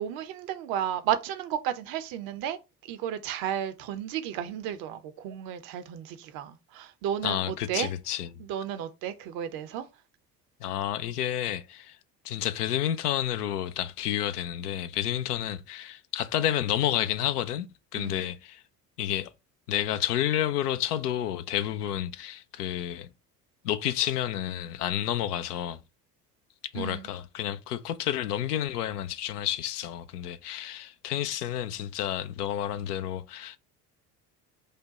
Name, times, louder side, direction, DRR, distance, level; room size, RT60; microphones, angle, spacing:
voice 1, 0.0-2.6 2.9-7.9 8.4-9.9 17.9-18.2 26.7-27.1, right 10 dB, 45° right, 0.7 m, -33 dB
voice 2, 7.2-8.3 10.6-12.0 12.2-17.7 17.9-18.6 19.0-19.3 19.7-23.1 23.6-25.8 26.7-33.6, left 11 dB, 75° left, 0.6 m, -30 dB
5.1 x 2.2 x 4.0 m
figure-of-eight pair, 65°, 47 cm